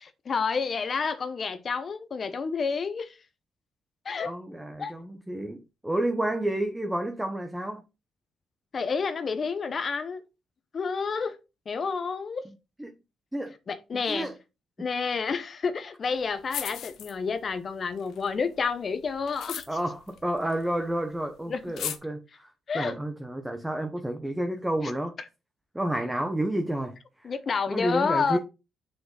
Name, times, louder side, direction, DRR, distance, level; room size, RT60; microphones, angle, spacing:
voice 1, 0.3-3.1 4.1-4.3 4.8-4.9 8.7-10.2 10.7-11.4 11.7-12.4 13.7-14.3 14.8-19.6 21.5-21.6 22.7-22.9 27.2-28.4, left 5 dB, 45° left, 0.7 m, -29 dB
voice 2, 4.2-7.8 12.8-12.9 13.3-13.5 14.1-14.3 19.7-22.5 22.7-25.1 25.7-27.0 27.7-28.4, right 1 dB, 10° right, 1.0 m, -30 dB
sound 1, 16.1-16.2 16.4-17.5 17.9-20.9 21.2-21.3 21.6-22.0, left 10 dB, 75° left, 0.8 m, -37 dB
6.3 x 5.0 x 3.8 m
cardioid pair, 90°, 0 cm